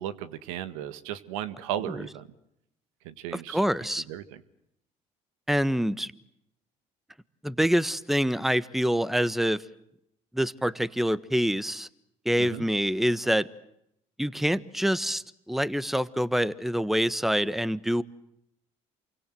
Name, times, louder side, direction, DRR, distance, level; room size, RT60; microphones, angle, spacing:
voice 1, 0.0-2.3 3.0-3.6 4.1-4.4 12.4-12.6, right 11 dB, 85° right, 13 dB, 1.7 m, -35 dB
voice 2, 3.3-4.0 5.5-6.1 7.4-9.6 10.3-11.9 12.2-13.5 14.2-18.0, equal, ahead, 17 dB, 1.3 m, -26 dB
28.5 x 24.5 x 7.8 m, 0.80 s
hypercardioid pair, 65°, 17 cm